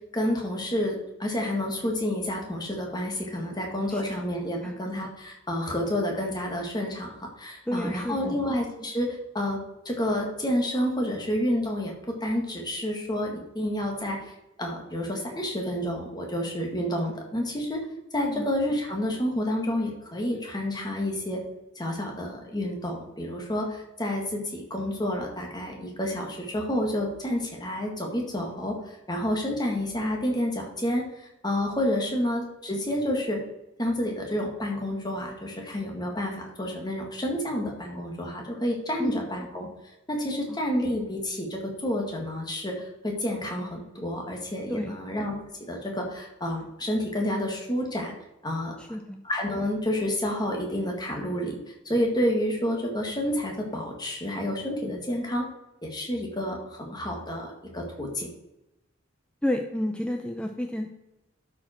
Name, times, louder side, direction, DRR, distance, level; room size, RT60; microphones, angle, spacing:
voice 1, 0.1-9.6 9.9-11.9 12.2-17.8 18.1-21.4 21.8-33.4 33.8-39.7 40.1-45.4 45.7-48.1 48.4-48.8 49.2-51.6 51.9-55.5 55.8-58.3, left 1 dB, 20° left, 1 dB, 1.8 m, -29 dB
voice 2, 7.7-8.4 18.3-18.4 39.0-39.2 44.7-45.0 48.8-49.2 59.4-60.9, left 1 dB, 5° left, 4 dB, 0.5 m, -30 dB
12.0 x 5.1 x 4.4 m, 0.93 s
head